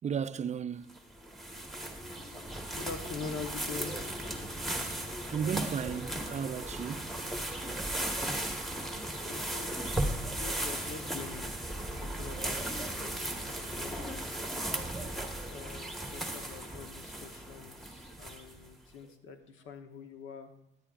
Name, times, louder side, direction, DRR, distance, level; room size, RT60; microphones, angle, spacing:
voice 1, 0.0-1.0 5.3-7.1, right 7 dB, 35° right, 0.4 m, -34 dB
sound 1, 0.9-18.7, right 1 dB, ahead, 1.3 m, -36 dB
voice 2, 2.7-4.0 9.2-11.6 11.9-12.6 12.9-14.3 15.5-20.5, left 5 dB, 85° left, 1.0 m, -45 dB
17.0 x 9.8 x 2.4 m
cardioid pair, 90°, 20 cm